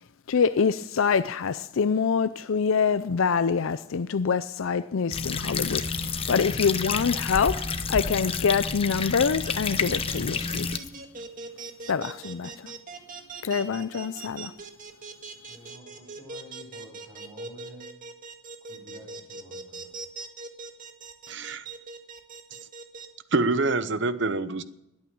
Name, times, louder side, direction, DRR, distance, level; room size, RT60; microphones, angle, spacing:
voice 1, 0.3-7.6 7.9-10.7 11.9-12.7 13.4-14.5, left 6 dB, 80° left, 0.5 m, -25 dB
sound 1, 5.1-10.8, left 5 dB, 30° left, 0.8 m, -29 dB
sound 2, 9.4-23.1, right 3 dB, 40° right, 1.7 m, -40 dB
voice 2, 15.4-17.9 18.6-19.9, equal, 20° right, 7.5 m, -49 dB
voice 3, 21.3-21.6 23.3-24.6, right 3 dB, 60° right, 0.8 m, -26 dB
20.5 x 8.9 x 7.1 m
head